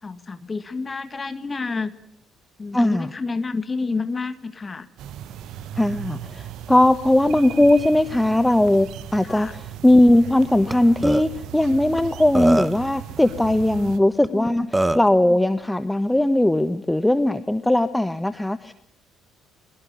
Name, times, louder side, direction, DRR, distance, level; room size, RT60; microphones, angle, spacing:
voice 1, 0.0-1.9 2.6-4.9 9.2-9.6 13.8-13.9 14.3-14.7, left 4 dB, 25° left, 12 dB, 1.8 m, -29 dB
voice 2, 2.7-3.1 5.7-14.6 14.9-18.7, left 1 dB, 5° left, 12 dB, 1.4 m, -19 dB
sound 1, 5.0-14.0, right 10 dB, 60° right, 1.4 m, -37 dB
Burping eructation, 10.7-10.8 11.0-11.2 12.0-12.1 12.3-12.9 14.2-14.3 14.7-15.1, right 2 dB, 10° right, 1.3 m, -21 dB
24.0 x 23.5 x 8.6 m, 0.68 s
figure-of-eight pair, 50°, 0 cm